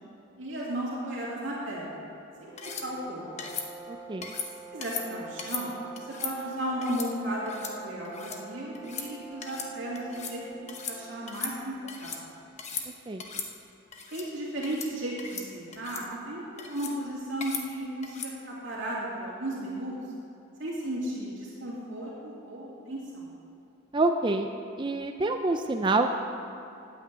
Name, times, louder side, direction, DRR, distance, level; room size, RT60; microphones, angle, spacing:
voice 1, 0.4-2.0 2.4-3.2 4.7-11.7 12.0-12.2 14.1-20.0 20.6-23.3, right 1 dB, 60° right, -6 dB, 2.4 m, -35 dB
sound 1, 2.4-11.4, right 3 dB, 15° left, 1.5 m, -46 dB
sound 2, 2.6-2.9 3.4-3.7 4.2-4.5 4.8-5.0 5.4-5.6 6.0-6.3 6.8-7.1 7.5-7.7 8.0-8.4 8.7-9.1 9.4-9.7 9.9-10.4 10.7-11.0 11.3-12.2 12.6-12.9 13.2-13.5 13.9-14.3 14.6-14.9 15.2-15.5 15.7-16.0 16.6-16.9 17.4-17.6 18.0-18.3, left 6 dB, 30° left, 0.9 m, -37 dB
voice 2, 3.9-4.3 13.1-13.2 23.9-24.5 24.8-26.1, right 2 dB, 20° right, 5 dB, 0.4 m, -26 dB
9.1 x 8.4 x 8.2 m, 2.8 s
head